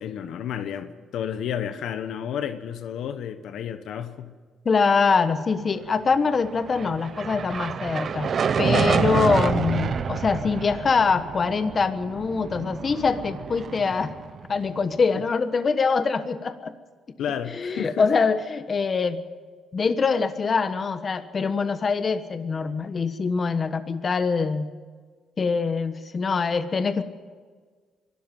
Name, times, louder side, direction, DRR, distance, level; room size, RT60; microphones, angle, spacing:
voice 1, 0.0-4.3 17.2-18.1, left 9 dB, 75° left, 11 dB, 1.1 m, -31 dB
voice 2, 4.6-8.3 8.6-14.1 14.5-16.7 17.6-19.2 19.7-24.7 25.4-27.0, left 5 dB, 40° left, 11 dB, 1.2 m, -24 dB
sound 1, 6.4-14.9, right 6 dB, 50° right, 0.9 m, -28 dB
23.0 x 13.0 x 9.2 m, 1.5 s
cardioid pair, 90°, 0 cm